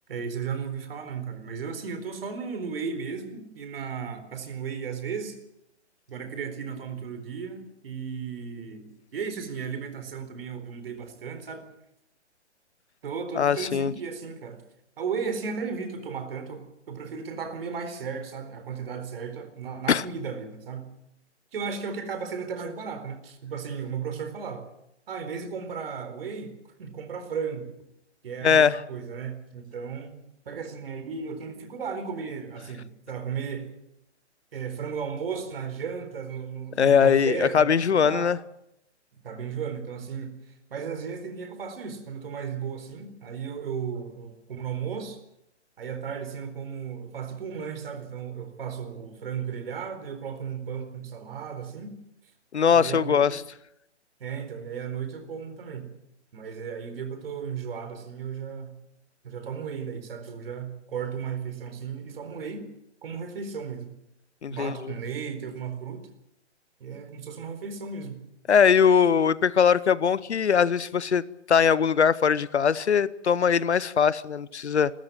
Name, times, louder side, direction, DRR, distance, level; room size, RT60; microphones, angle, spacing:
voice 1, 0.1-5.4 6.1-8.9 9.1-11.6 13.0-14.6 15.0-21.0 21.5-24.7 25.1-26.5 26.8-27.7 28.2-30.1 30.5-33.7 34.5-38.4 39.2-40.3 40.7-45.2 45.8-51.9 52.7-53.4 54.2-55.9 56.3-58.7 59.2-62.7 63.0-63.9 64.5-66.1 66.8-68.2, right 6 dB, 55° right, 8 dB, 4.2 m, -35 dB
voice 2, 13.4-13.9 19.9-20.0 28.4-28.8 36.8-38.4 52.5-53.4 64.4-64.9 68.5-74.9, left 7 dB, 70° left, 20 dB, 0.9 m, -21 dB
28.0 x 13.5 x 7.5 m, 0.81 s
figure-of-eight pair, 130°, 35 cm